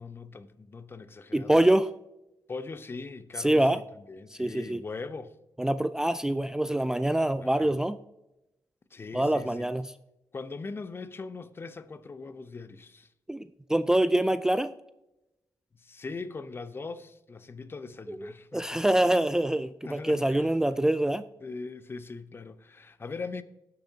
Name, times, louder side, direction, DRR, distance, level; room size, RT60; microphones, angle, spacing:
voice 1, 0.0-1.6 2.5-5.4 7.4-7.8 8.9-9.7 10.3-13.1 15.8-18.8 19.8-20.5 21.4-23.4, left 4 dB, 35° left, 0.6 m, -41 dB
voice 2, 1.3-1.9 3.4-3.8 4.4-4.8 5.6-8.0 9.1-9.9 13.3-13.4 13.7-14.7 18.1-21.2, right 1 dB, 10° right, 0.3 m, -25 dB
17.0 x 6.8 x 2.8 m
cardioid pair, 85°, 7 cm